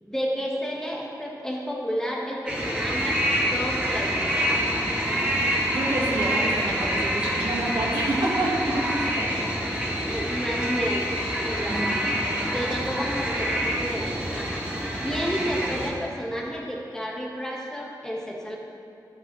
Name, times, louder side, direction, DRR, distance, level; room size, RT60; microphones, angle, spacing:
voice 1, 0.0-3.2 3.5-4.4 9.2-9.3 10.0-11.1 11.4-12.0 12.5-14.7 15.0-18.6, equal, 10° left, -3 dB, 1.4 m, -31 dB
sound 1, 2.5-15.9, equal, 15° right, 2.1 m, -26 dB
voice 2, 5.7-9.3 10.0-10.2 11.7-12.5, right 1 dB, 80° right, -3 dB, 1.6 m, -29 dB
13.0 x 7.1 x 3.1 m, 2.6 s
wide cardioid pair, 85°, 8 cm